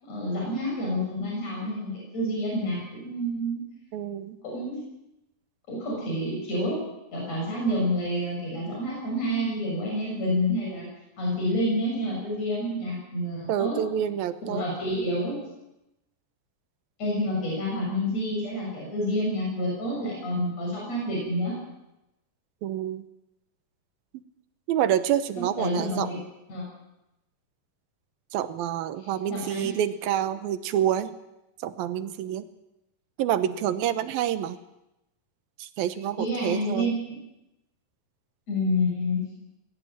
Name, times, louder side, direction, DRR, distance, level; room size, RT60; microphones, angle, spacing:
voice 1, 0.0-3.6 4.4-4.8 5.7-6.8 7.1-10.9 11.2-13.8 14.4-15.4 17.0-21.5 25.4-26.2 26.5-26.7 29.0-29.7 36.2-37.1 38.5-39.2, equal, 45° left, -3 dB, 8.3 m, -28 dB
voice 2, 3.9-4.4 13.5-14.6 22.6-23.0 24.7-26.2 28.3-31.1 31.6-32.4 33.2-34.6 35.6-36.9, right 10 dB, 85° right, 12 dB, 2.8 m, -27 dB
20.5 x 17.0 x 8.9 m, 0.90 s
omnidirectional pair, 4.2 m